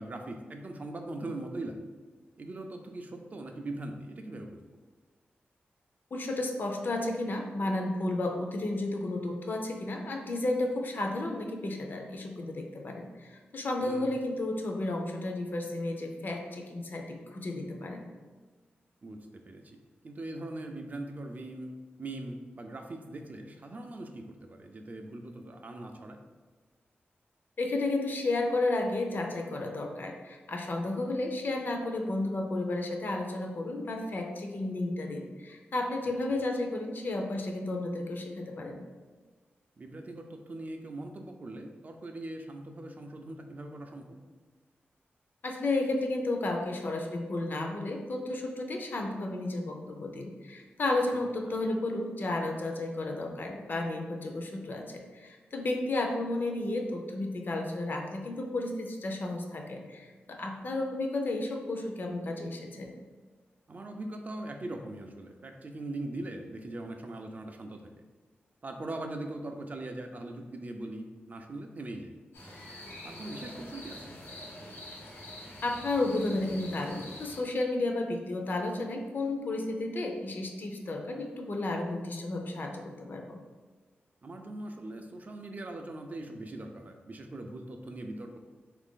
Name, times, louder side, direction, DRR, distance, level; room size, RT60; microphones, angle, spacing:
voice 1, 0.0-1.8 2.4-4.6 13.8-14.1 19.0-19.8 20.0-21.7 22.0-26.2 39.8-44.2 51.1-51.6 63.7-68.0 68.6-72.2 73.0-74.1 84.2-88.4, right 2 dB, 40° right, 4 dB, 0.3 m, -41 dB
voice 2, 6.1-18.0 27.6-38.8 45.4-62.9 75.6-83.4, left 2 dB, 55° left, 2 dB, 0.5 m, -32 dB
sound 1, 72.3-77.4, left 1 dB, 75° left, 1.1 m, -45 dB
3.3 x 2.4 x 3.6 m, 1.4 s
wide cardioid pair, 105°, 4 cm